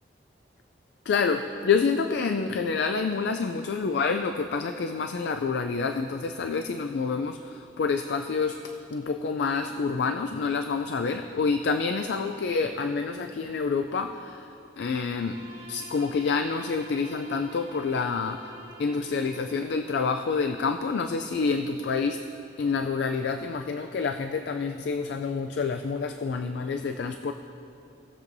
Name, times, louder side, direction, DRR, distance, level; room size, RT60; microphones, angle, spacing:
voice 1, 1.1-14.5 14.8-15.4 15.7-18.4 18.8-22.2 22.6-27.3, left 5 dB, 70° left, 7 dB, 0.3 m, -28 dB
Bowed string instrument, 14.9-19.9, right 1 dB, 65° right, 1.6 m, -48 dB
19.0 x 7.0 x 2.7 m, 2.7 s
head